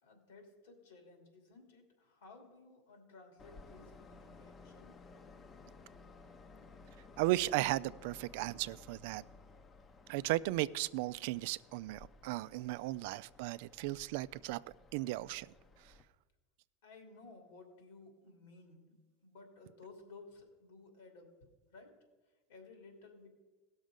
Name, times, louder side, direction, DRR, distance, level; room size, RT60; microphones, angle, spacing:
voice 1, 0.0-5.0 12.9-13.0 16.8-18.9 19.2-21.3 21.7-22.0 22.5-23.3, left 3 dB, 85° left, 2.8 m, -56 dB
Train, 3.4-16.0, left 3 dB, 30° left, 0.8 m, -57 dB
voice 2, 7.2-9.2 10.1-14.6 14.9-15.5, right 17 dB, 70° right, 0.3 m, -35 dB
17.0 x 6.3 x 5.1 m
hypercardioid pair, 100°, 0 cm